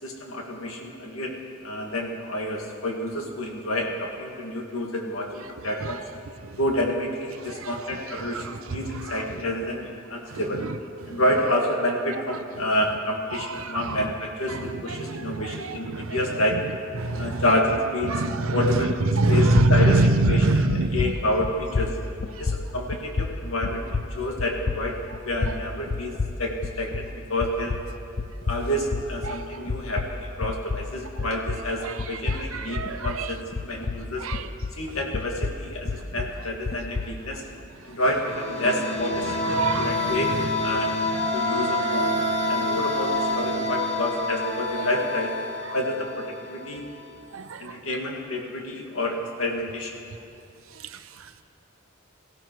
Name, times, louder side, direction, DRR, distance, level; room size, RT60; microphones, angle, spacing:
voice 1, 0.0-6.0 6.6-10.7 11.1-16.6 17.2-18.1 18.5-19.0 19.3-21.9 22.4-25.0 25.2-27.8 28.4-34.3 34.7-37.4 37.8-41.0 41.3-42.1 42.5-45.3 45.7-46.9 47.6-50.0, left 1 dB, 90° left, 0 dB, 2.1 m, -28 dB
voice 2, 5.6-6.0 6.4-6.6 7.4-9.3 10.3-10.7 11.0-11.2 13.3-14.1 14.5-16.6 16.9-17.4 18.0-21.1 22.3-22.5 29.2-29.6 31.2-31.5 31.8-33.3 34.2-34.5 36.0-36.1 37.9-38.0 39.2-40.1 43.8-43.9 44.8-44.9 45.6-45.7 47.3-47.8 50.7-51.4, right 2 dB, 85° right, 10 dB, 0.7 m, -26 dB
sound 1, 19.0-19.3 19.5-27.2 27.4-31.7 32.0-34.8 35.1-37.2, left 3 dB, 50° left, 0.6 m, -30 dB
sound 2, 38.1-46.7, left 1 dB, 65° left, 2.7 m, -27 dB
17.5 x 15.0 x 4.7 m, 2.5 s
head